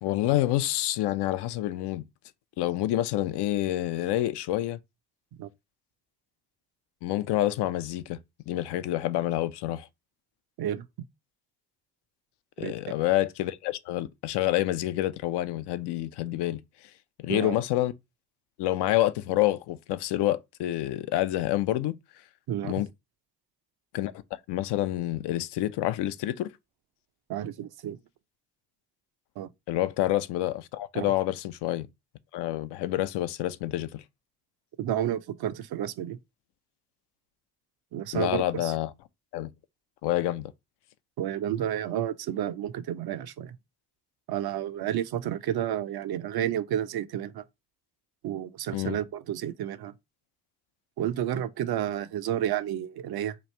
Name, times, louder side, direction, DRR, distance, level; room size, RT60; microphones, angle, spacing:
voice 1, 0.0-2.0 2.6-4.8 7.0-8.2 8.5-9.9 12.6-16.6 17.2-17.9 18.6-21.9 22.6-22.9 23.9-24.1 24.5-26.5 29.7-31.9 32.3-34.0 38.1-38.9 39.3-39.5 40.0-40.5 48.7-49.0, left 14 dB, 75° left, 0.5 m, -28 dB
voice 2, 10.6-11.1 12.6-12.7 17.3-17.6 22.5-22.7 27.3-28.0 29.4-29.5 30.9-31.1 34.8-36.2 37.9-38.8 41.2-43.6 44.3-47.4 48.2-49.9 51.0-53.4, right 11 dB, 65° right, 0.6 m, -31 dB
3.1 x 2.5 x 4.2 m
supercardioid pair, 45°, 41 cm